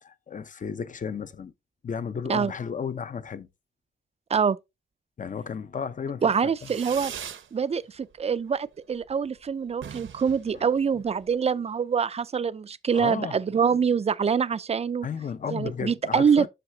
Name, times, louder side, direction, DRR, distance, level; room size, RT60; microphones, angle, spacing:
voice 1, 0.0-1.5 1.8-3.5 5.2-6.3 10.5-10.7 10.9-11.0 12.9-13.3 15.0-16.5, left 6 dB, 40° left, 0.6 m, -33 dB
voice 2, 6.2-7.1 7.5-15.1 15.5-16.5, right 6 dB, 30° right, 0.4 m, -25 dB
Fireworks, 6.6-7.5 7.8-8.4 8.7-8.8 9.0-9.1 9.4-9.5 9.7-11.4, right 8 dB, 75° right, 0.8 m, -41 dB
7.8 x 6.5 x 2.7 m
wide cardioid pair, 150°, 20 cm